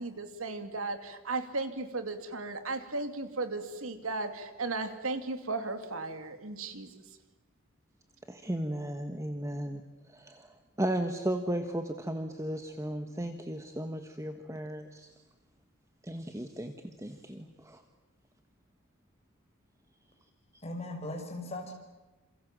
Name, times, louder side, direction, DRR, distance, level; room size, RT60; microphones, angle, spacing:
voice 1, 0.0-6.9, right 3 dB, 85° right, 8 dB, 2.8 m, -35 dB
voice 2, 8.3-9.8 10.1-10.5 10.8-15.1 16.0-17.8, right 1 dB, 15° right, 6 dB, 1.4 m, -35 dB
voice 3, 20.6-21.7, left 1 dB, 30° left, 3 dB, 5.8 m, -38 dB
28.5 x 27.5 x 7.6 m, 1.2 s
head